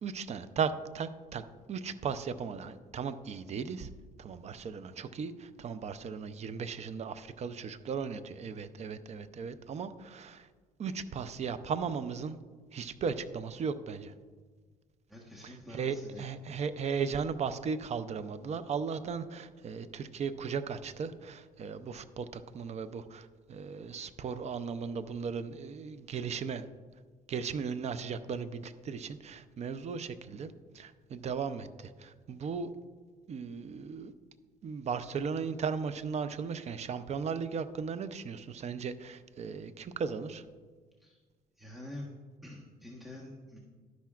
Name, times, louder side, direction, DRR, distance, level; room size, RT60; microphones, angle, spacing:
voice 1, 0.0-1.4 1.7-3.9 4.2-10.5 10.8-12.4 12.7-14.1 15.4-26.7 27.3-32.7 33.3-34.1 34.6-40.4, right 6 dB, 40° right, 12 dB, 0.6 m, -36 dB
voice 2, 15.1-16.3 41.0-41.2 41.6-42.1 42.4-43.6, left 1 dB, ahead, -3 dB, 1.3 m, -46 dB
11.5 x 10.5 x 2.4 m, 1.5 s
cardioid pair, 110°, 17 cm